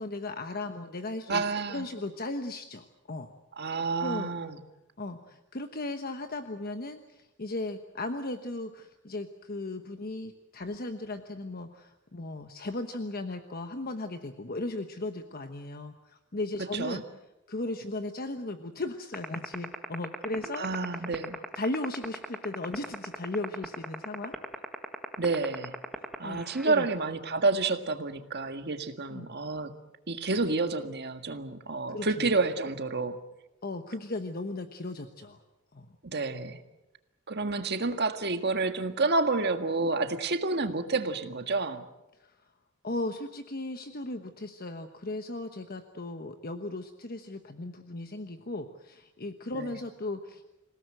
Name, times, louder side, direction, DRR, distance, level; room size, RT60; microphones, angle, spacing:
voice 1, 0.0-1.4 1.7-3.3 4.0-4.3 5.0-17.0 17.5-20.7 21.5-24.3 26.1-26.9 29.1-29.3 31.9-32.3 33.6-35.4 35.7-35.9 42.8-50.4, left 2 dB, 45° left, 7 dB, 1.2 m, -36 dB
voice 2, 1.3-1.9 3.6-4.6 16.7-17.0 20.6-21.4 25.2-25.8 26.2-29.7 30.1-33.2 36.0-36.6 37.3-41.8 49.5-49.7, right 3 dB, 50° right, 7 dB, 1.8 m, -29 dB
sound 1, 19.1-26.7, equal, ahead, 1.7 m, -34 dB
27.5 x 17.5 x 7.8 m, 0.96 s
head